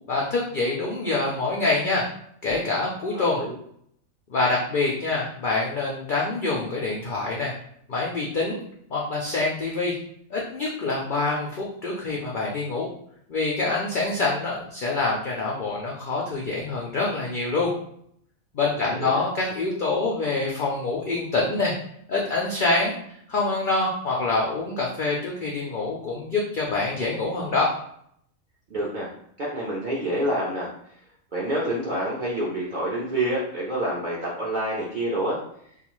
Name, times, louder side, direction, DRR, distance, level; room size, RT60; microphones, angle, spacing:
voice 1, 0.1-2.1 2.4-3.4 4.3-7.5 7.9-8.6 8.9-9.9 10.3-12.9 13.3-17.7 18.5-21.7 22.1-27.7, left 3 dB, 75° left, -3 dB, 0.4 m, -26 dB
voice 2, 3.1-3.5 18.8-19.2 28.7-29.1 29.4-30.7 31.3-35.4, right 1 dB, 55° right, -5 dB, 0.5 m, -27 dB
2.4 x 2.3 x 2.9 m, 0.68 s
omnidirectional pair, 1.4 m